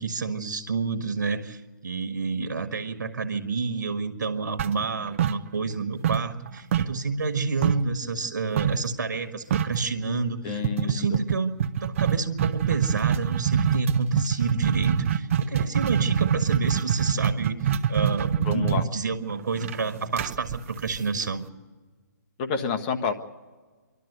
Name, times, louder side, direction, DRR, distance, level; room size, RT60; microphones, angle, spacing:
voice 1, 0.0-1.6 1.8-11.5 11.8-17.6 17.9-21.5, right 4 dB, 75° right, 10 dB, 1.6 m, -29 dB
sound 1, 4.6-5.8 6.0-7.9 8.6-8.9 9.2-9.3 9.5-9.9 10.6-21.4, right 8 dB, 45° right, 0.8 m, -25 dB
voice 2, 10.4-11.2 18.4-18.8 22.4-23.1, left 6 dB, 30° left, 5 dB, 1.4 m, -29 dB
27.5 x 12.0 x 8.1 m, 1.4 s
hypercardioid pair, 145°, 10 cm